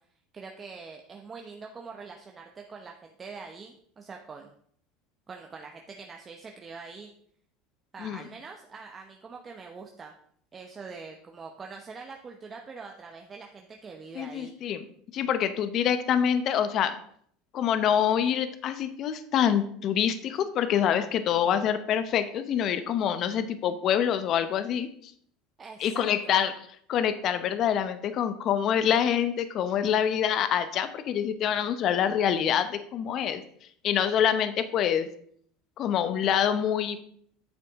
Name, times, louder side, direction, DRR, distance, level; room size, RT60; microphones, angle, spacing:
voice 1, 0.3-4.5 5.3-7.1 7.9-10.1 10.5-14.5 25.6-26.3, right 4 dB, 25° right, 2 dB, 0.9 m, -44 dB
voice 2, 14.1-14.8 15.1-17.0 17.5-25.1 25.8-26.6 26.9-33.4 33.8-35.1 35.8-37.0, left 9 dB, 50° left, 11 dB, 0.8 m, -26 dB
9.0 x 6.8 x 3.6 m, 0.63 s
supercardioid pair, 100°, 0 cm